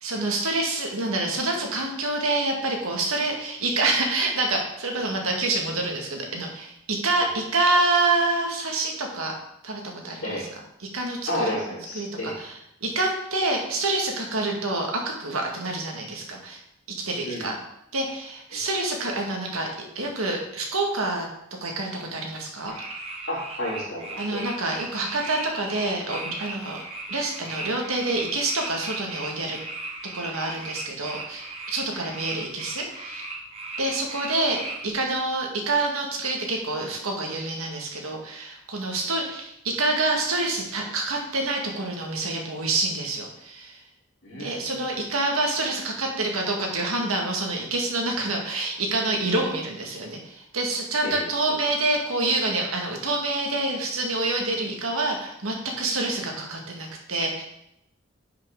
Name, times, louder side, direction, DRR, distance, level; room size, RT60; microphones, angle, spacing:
voice 1, 0.0-9.3 9.6-10.5 10.8-11.5 11.9-12.6 12.8-16.6 16.9-17.6 17.9-21.3 21.6-22.8 24.2-26.8 27.1-29.6 30.1-33.3 33.8-43.8 44.3-57.4, right 2 dB, 85° right, 1 dB, 1.9 m, -27 dB
voice 2, 11.3-12.4 17.2-17.5 18.5-18.6 23.3-24.4 44.2-44.8 51.0-51.6, left 1 dB, 60° left, -5 dB, 3.6 m, -31 dB
sound 1, 22.7-34.9, right 2 dB, 30° right, 1.4 m, -37 dB
10.0 x 5.8 x 3.9 m, 0.79 s
head